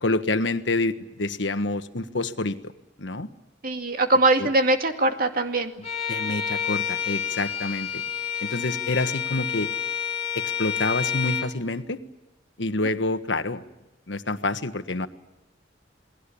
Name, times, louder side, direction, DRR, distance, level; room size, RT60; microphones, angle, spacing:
voice 1, 0.0-2.7 3.0-3.3 4.4-4.5 6.1-8.0 8.4-9.7 10.3-12.0 12.6-13.6 14.1-15.1, left 2 dB, 75° left, 9 dB, 1.5 m, -27 dB
voice 2, 3.6-5.7, right 2 dB, 50° right, 5 dB, 2.3 m, -21 dB
Bowed string instrument, 5.8-11.5, left 8 dB, 35° left, 3.1 m, -29 dB
28.5 x 20.5 x 8.6 m, 0.99 s
head